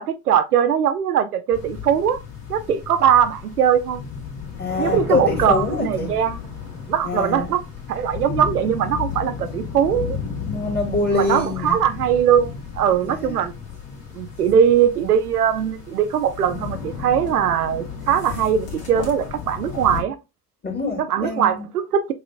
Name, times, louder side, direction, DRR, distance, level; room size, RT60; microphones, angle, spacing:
voice 1, 0.0-2.2 2.5-4.0 4.7-6.4 6.9-7.6 7.9-10.2 11.1-13.5 14.1-20.2 21.0-22.1, right 8 dB, 80° right, 0.6 m, -20 dB
sound 1, 1.5-20.0, left 6 dB, 50° left, 2.2 m, -33 dB
voice 2, 4.6-6.1 7.0-7.5 10.5-11.8 13.0-13.3 20.6-21.7, left 3 dB, 20° left, 2.3 m, -24 dB
7.0 x 3.0 x 2.4 m
figure-of-eight pair, 60°, 46 cm